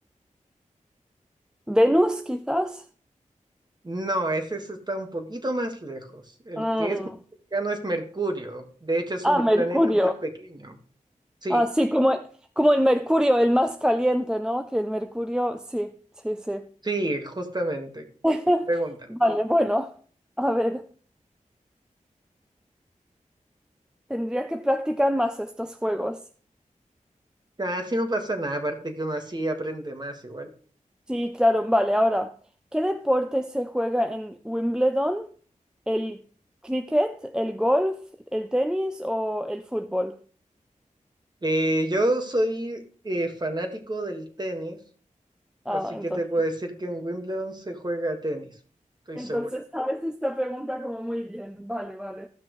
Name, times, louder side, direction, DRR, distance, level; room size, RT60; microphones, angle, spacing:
voice 1, 1.7-2.8 6.6-7.1 9.2-10.1 11.5-12.3 12.6-16.0 16.2-16.7 18.2-18.7 19.1-19.9 20.4-20.8 24.1-26.2 31.1-32.3 32.7-35.3 35.9-36.2 36.6-38.0 38.3-40.2 45.7-46.2 49.2-52.3, equal, 5° right, 0.5 m, -24 dB
voice 2, 3.8-7.0 7.5-10.1 10.5-10.8 11.4-11.6 16.8-18.1 18.7-19.1 27.6-30.5 41.4-44.8 45.7-48.5 49.1-49.5, right 1 dB, 30° right, 1.7 m, -29 dB
15.0 x 6.1 x 3.1 m
wide cardioid pair, 60°, 13 cm